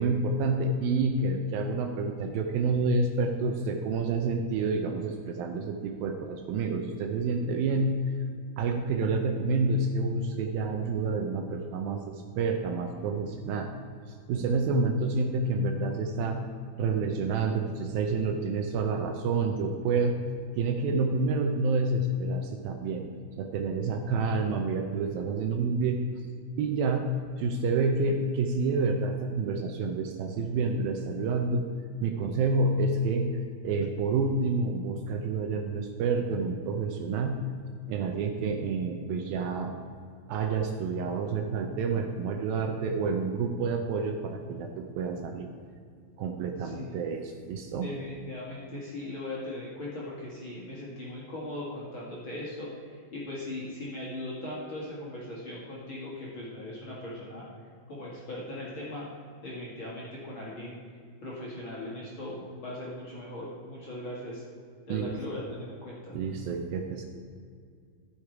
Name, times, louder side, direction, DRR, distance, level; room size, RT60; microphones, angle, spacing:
voice 1, 0.0-8.0 8.6-13.8 14.3-16.5 16.8-20.2 20.6-23.0 23.4-26.0 26.6-31.7 32.0-33.4 33.6-37.4 37.9-39.7 40.3-45.5 46.2-47.9 64.9-65.2 66.1-67.1, right 3 dB, 75° right, 4 dB, 2.3 m, -28 dB
voice 2, 46.6-47.0 47.8-57.5 57.9-59.1 59.4-60.8 61.2-64.4 64.9-66.2, left 1 dB, 40° left, -6 dB, 2.2 m, -39 dB
13.5 x 6.7 x 4.7 m, 2.2 s
omnidirectional pair, 4.5 m